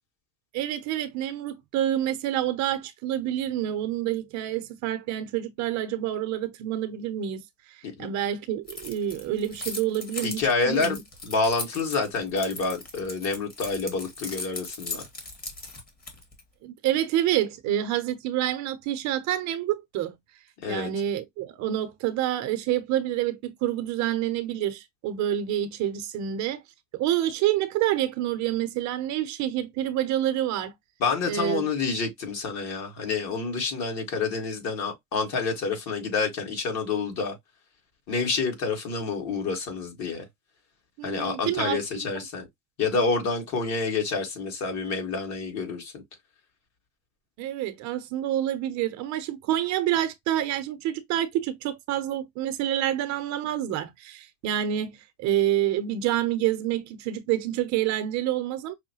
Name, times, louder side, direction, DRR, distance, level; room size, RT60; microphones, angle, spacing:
voice 1, 0.5-7.7 8.0-11.0 16.6-20.2 20.7-26.6 26.9-30.7 31.3-31.7 41.0-42.2 47.4-58.7, right 12 dB, 50° right, 0.7 m, -28 dB
Keys jangling, 8.7-16.4, left 2 dB, 25° left, 1.4 m, -38 dB
voice 2, 10.2-11.0 11.2-15.1 20.6-20.9 31.0-37.4 38.1-40.3 41.0-42.4 42.8-45.9, left 4 dB, 45° left, 1.9 m, -28 dB
5.4 x 2.1 x 2.9 m
supercardioid pair, 130°, 38 cm